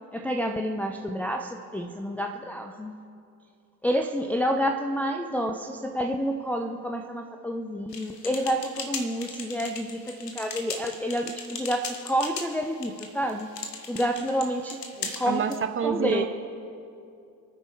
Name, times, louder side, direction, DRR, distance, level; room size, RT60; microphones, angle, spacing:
voice 1, 0.1-3.0 3.8-13.5 13.9-14.8 15.2-15.4 15.8-16.3, equal, 5° left, 2 dB, 0.6 m, -29 dB
Typing on Keyboard, 7.9-15.6, left 4 dB, 75° left, 1.5 m, -38 dB
voice 2, 15.0-16.3, right 7 dB, 25° right, 8 dB, 1.1 m, -28 dB
28.0 x 9.7 x 3.5 m, 2.5 s
figure-of-eight pair, 60°, 49 cm